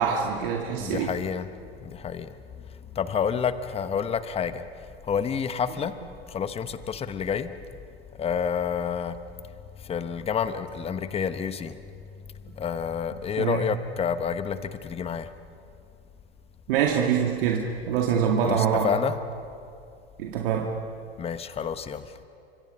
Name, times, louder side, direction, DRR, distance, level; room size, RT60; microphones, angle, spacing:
voice 1, 0.0-1.1 13.4-13.7 16.7-19.0 20.2-20.7, right 7 dB, 55° right, 1 dB, 2.2 m, -25 dB
voice 2, 0.7-1.5 1.8-2.3 2.9-4.6 5.1-5.9 6.3-7.5 8.2-9.2 9.8-11.8 12.6-15.3 18.4-19.2 21.2-22.0, left 7 dB, 20° left, 11 dB, 1.2 m, -29 dB
29.5 x 26.0 x 5.6 m, 2.5 s
hypercardioid pair, 110°, 32 cm